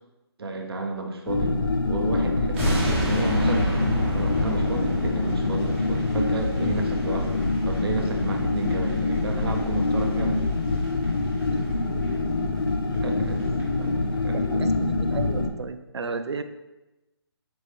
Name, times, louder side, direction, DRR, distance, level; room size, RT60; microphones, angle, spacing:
voice 1, 0.4-1.6 1.8-3.8 4.1-10.4 13.0-13.4 13.8-14.0 14.2-14.6, right 3 dB, 65° right, 3 dB, 0.7 m, -32 dB
sound 1, 1.3-15.5, left 3 dB, 55° left, 0.5 m, -25 dB
sound 2, 2.5-11.7 12.0-12.2 12.6-12.7 12.9-13.0 13.3-13.6 13.9-14.0, right 1 dB, 30° right, 1.3 m, -32 dB
voice 2, 11.5-11.9 14.3-16.4, right 4 dB, 90° right, 10 dB, 0.4 m, -33 dB
4.3 x 3.2 x 3.1 m, 1.0 s
figure-of-eight pair, 155°, 14 cm